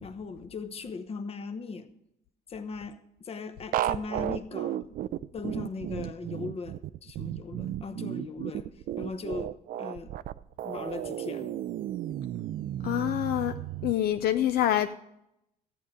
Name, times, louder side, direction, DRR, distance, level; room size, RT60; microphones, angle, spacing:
voice 1, 0.0-1.9 2.5-4.9 5.3-10.1 10.6-11.5, left 4 dB, 35° left, 0.9 m, -39 dB
sound 1, 3.7-13.9, right 12 dB, 55° right, 0.4 m, -34 dB
voice 2, 12.8-13.6 13.8-14.9, left 12 dB, 65° left, 0.5 m, -26 dB
13.5 x 8.4 x 5.0 m
cardioid pair, 110°, 17 cm